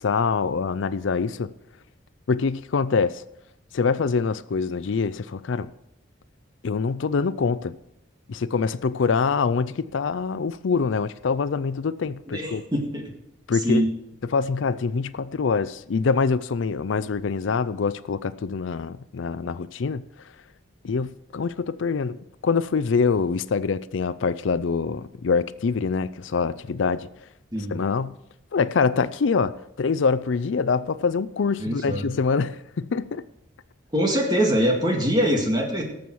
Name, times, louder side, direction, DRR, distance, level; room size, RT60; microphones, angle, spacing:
voice 1, 0.0-1.5 2.3-3.2 3.7-5.7 6.6-7.8 8.3-12.6 13.5-13.9 14.2-20.0 20.8-27.1 27.7-28.2 28.5-33.3, left 5 dB, 75° left, 0.4 m, -25 dB
voice 2, 12.3-13.1 13.5-13.9 27.5-27.8 31.6-32.1 33.9-35.8, equal, 20° right, 2.0 m, -23 dB
18.5 x 7.1 x 4.7 m
head